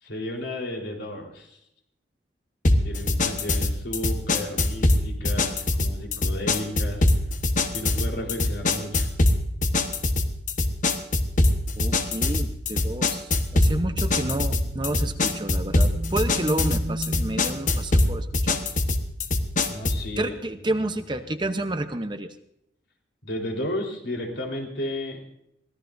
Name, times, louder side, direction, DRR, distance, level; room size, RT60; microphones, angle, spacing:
voice 1, 0.0-1.6 2.8-7.0 7.7-9.1 19.7-20.3 20.6-21.0 23.2-25.2, left 1 dB, 70° left, 0 dB, 4.1 m, -33 dB
sound 1, 2.6-20.1, left 2 dB, 40° left, 1.1 m, -23 dB
voice 2, 11.8-18.6 20.2-22.3, right 1 dB, 25° right, 8 dB, 0.8 m, -29 dB
24.0 x 17.0 x 2.6 m, 0.78 s
head